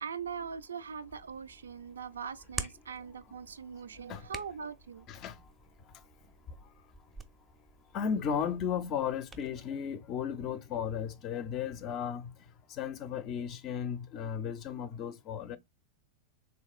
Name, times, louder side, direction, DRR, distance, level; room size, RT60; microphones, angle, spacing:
voice 1, 0.0-5.1, right 6 dB, 70° right, 0.3 m, -41 dB
Hands, 1.1-9.5, right 3 dB, 15° right, 0.5 m, -48 dB
voice 2, 5.1-5.4 7.9-12.3 12.7-15.6, left 7 dB, 35° left, 0.4 m, -35 dB
3.5 x 2.6 x 2.3 m
figure-of-eight pair, 90°, 0 cm